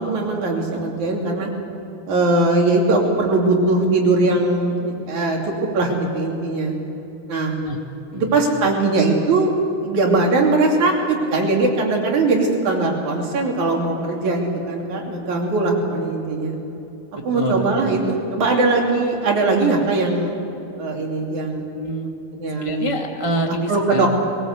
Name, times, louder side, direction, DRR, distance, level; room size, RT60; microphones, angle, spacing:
voice 1, 0.0-1.5 2.1-5.4 5.7-6.8 7.3-7.6 8.1-9.5 9.8-16.5 17.3-20.4 20.8-21.6 22.3-22.9 23.7-24.2, right 2 dB, 80° right, 0 dB, 4.3 m, -20 dB
voice 2, 8.1-8.4 17.1-18.1 21.8-22.1 22.5-24.1, equal, 20° right, 1 dB, 0.9 m, -26 dB
21.5 x 19.5 x 8.1 m, 2.9 s
omnidirectional pair, 3.3 m